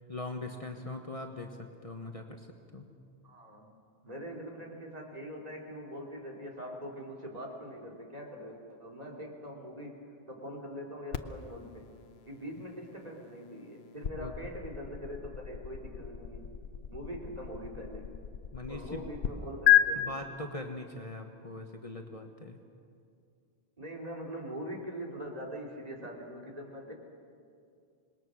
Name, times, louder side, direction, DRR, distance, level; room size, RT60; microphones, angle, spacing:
voice 1, 0.1-2.5 2.7-2.8 14.1-14.3 18.5-19.1 19.9-22.6, left 2 dB, 35° left, 3 dB, 1.3 m, -41 dB
voice 2, 3.2-3.7 4.0-11.9 12.3-16.5 16.9-18.1 18.7-20.2 23.8-26.9, equal, 35° right, -1 dB, 3.0 m, -43 dB
sound 1, 11.1-19.3 19.7-19.8, left 13 dB, 75° left, 1.0 m, -32 dB
26.5 x 20.5 x 6.3 m, 2.4 s
omnidirectional pair, 1.1 m